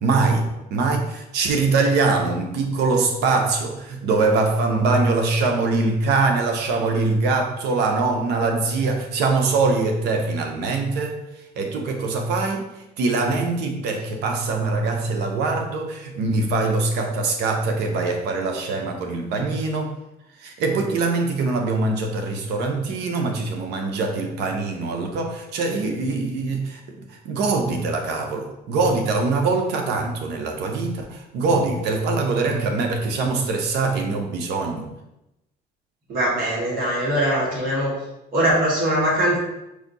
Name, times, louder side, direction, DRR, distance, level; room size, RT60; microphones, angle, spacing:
voice 1, 0.0-11.2 11.6-12.7 13.0-19.9 20.4-34.9, right 3 dB, 85° right, 3 dB, 0.8 m, -23 dB
voice 2, 36.1-37.9 38.3-39.4, right 1 dB, 60° right, -6 dB, 1.7 m, -21 dB
4.9 x 2.7 x 4.0 m, 0.90 s
cardioid pair, 110°, 17 cm